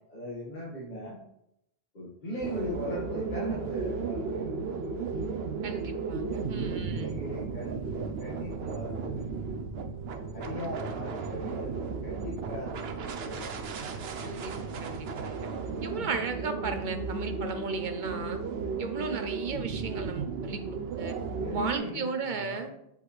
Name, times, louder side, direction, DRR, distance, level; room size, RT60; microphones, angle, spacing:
voice 1, 0.1-1.2 1.9-5.1 6.8-9.4 10.3-13.6 15.8-16.2 21.3-23.0, equal, 50° left, -6 dB, 1.8 m, -39 dB
sound 1, 2.4-21.8, right 4 dB, 80° right, 0.9 m, -35 dB
voice 2, 5.6-7.1 14.2-15.4 15.8-18.4 18.8-21.2 21.5-22.7, right 4 dB, 50° right, 7 dB, 0.9 m, -35 dB
7.9 x 5.4 x 3.2 m, 0.80 s
omnidirectional pair, 1.0 m